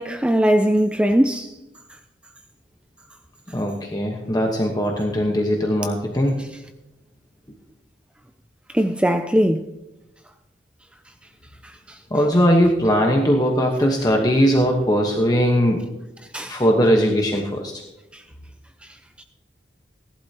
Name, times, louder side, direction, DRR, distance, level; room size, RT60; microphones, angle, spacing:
voice 1, 0.0-1.5 8.7-9.7 11.6-12.0 16.3-16.6 18.1-18.2 19.2-19.3, equal, 5° right, 0.4 m, -20 dB
voice 2, 3.5-6.4 12.1-15.8 16.5-17.7, equal, 20° left, 1.1 m, -19 dB
18.0 x 11.5 x 2.9 m
head